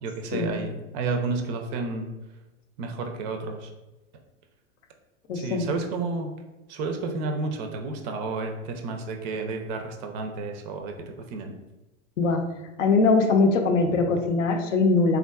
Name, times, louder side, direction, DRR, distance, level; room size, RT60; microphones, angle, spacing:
voice 1, 0.0-2.1 2.8-3.7 5.3-6.3 6.7-11.5, right 3 dB, 35° right, 4 dB, 0.4 m, -31 dB
voice 2, 5.3-5.7 12.2-12.4 12.8-15.2, left 3 dB, 70° left, 4 dB, 0.6 m, -21 dB
3.5 x 2.3 x 2.3 m, 1.1 s
figure-of-eight pair, 95°, 39 cm